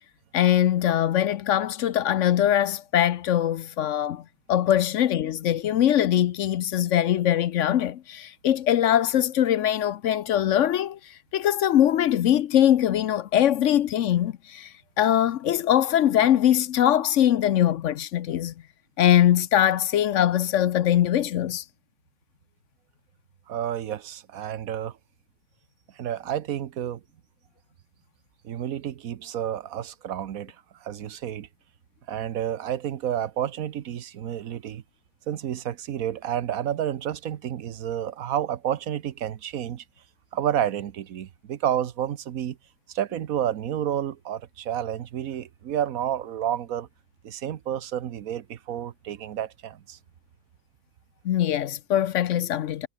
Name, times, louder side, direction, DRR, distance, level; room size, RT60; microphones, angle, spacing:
voice 1, 0.3-4.2 4.5-11.0 11.3-18.5 19.0-21.6 51.2-52.9, left 11 dB, 60° left, 0.9 m, -22 dB
voice 2, 23.5-25.0 26.0-27.0 28.4-30.6 30.8-31.5 32.1-34.8 35.3-39.8 40.3-42.6 42.9-46.9 47.2-50.0, right 10 dB, 70° right, 1.3 m, -30 dB
omnidirectional pair, 1.6 m